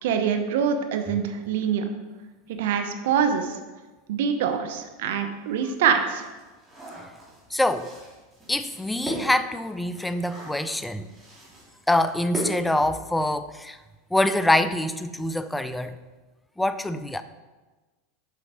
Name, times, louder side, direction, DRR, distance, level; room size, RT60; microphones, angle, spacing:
voice 1, 0.0-1.8 2.6-3.6 4.1-6.3, right 7 dB, 75° right, 7 dB, 0.8 m, -24 dB
sound 1, 4.8-4.9 5.4-13.4 13.7-13.8 14.1-14.4, equal, 15° right, 2.6 m, -39 dB
voice 2, 7.5-7.9 8.5-11.1 11.9-13.8 14.1-16.0 16.6-17.2, left 1 dB, 5° left, 11 dB, 0.4 m, -25 dB
6.9 x 5.3 x 4.7 m, 1.2 s
supercardioid pair, 125°, 0 cm